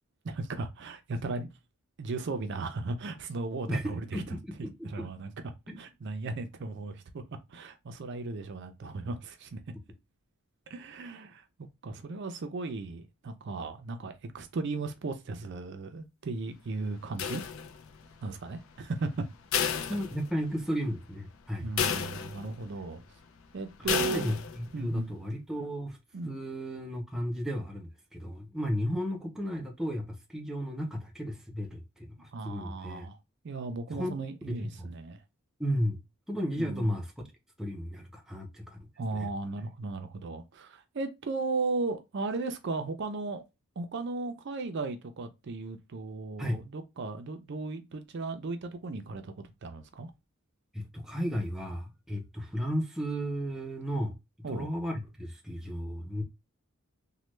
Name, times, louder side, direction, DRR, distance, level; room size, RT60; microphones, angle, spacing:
voice 1, 0.2-1.5 2.0-4.2 4.8-7.2 7.5-9.6 10.7-17.4 18.2-19.3 21.6-23.0 23.5-24.3 24.7-25.1 26.1-26.4 32.3-33.2 33.4-35.2 36.6-36.9 39.0-43.4 43.8-49.3 49.6-50.1 54.4-54.7, right 3 dB, 50° right, 0.4 m, -36 dB
voice 2, 3.7-5.1 5.7-5.8 19.9-21.7 23.8-26.0 26.3-33.1 33.9-34.1 34.5-34.9 35.6-36.0 36.3-37.1 37.6-38.8 39.2-39.3 46.4-46.6 50.7-54.1 54.5-56.2, equal, ahead, 0.6 m, -34 dB
sound 1, 17.2-18.0 19.5-20.7 21.0-21.1 21.8-22.7 23.9-24.7, left 7 dB, 65° left, 0.4 m, -31 dB
3.1 x 2.1 x 3.1 m
head